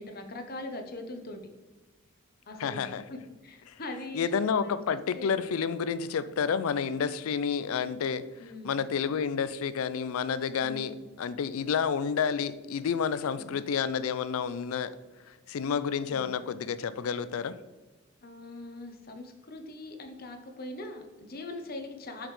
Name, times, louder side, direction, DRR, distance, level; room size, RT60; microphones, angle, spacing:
voice 1, 0.0-1.4 2.5-4.3 4.6-5.4 8.4-8.7 10.6-11.0 13.3-13.5 16.1-16.3 18.2-22.3, left 2 dB, 45° left, 0.8 m, -42 dB
voice 2, 2.6-3.0 4.1-8.2 8.6-15.0 15.5-17.6, left 6 dB, 75° left, 0.4 m, -30 dB
7.2 x 5.1 x 3.2 m
head